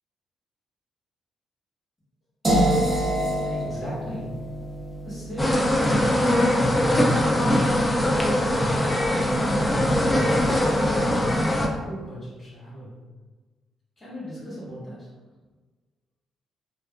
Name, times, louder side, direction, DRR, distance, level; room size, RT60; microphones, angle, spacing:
voice 1, 2.4-3.0 3.4-4.3 5.0-6.3 6.6-7.8 9.3-9.7 10.1-12.9 14.0-15.1, equal, 35° left, -11 dB, 1.5 m, -37 dB
sound 1, 2.4-8.4, right 1 dB, 20° right, 0.7 m, -28 dB
sound 2, 5.4-11.7, left 1 dB, 15° left, 0.4 m, -21 dB
2.5 x 2.3 x 2.3 m, 1.3 s
cardioid pair, 90°, 0 cm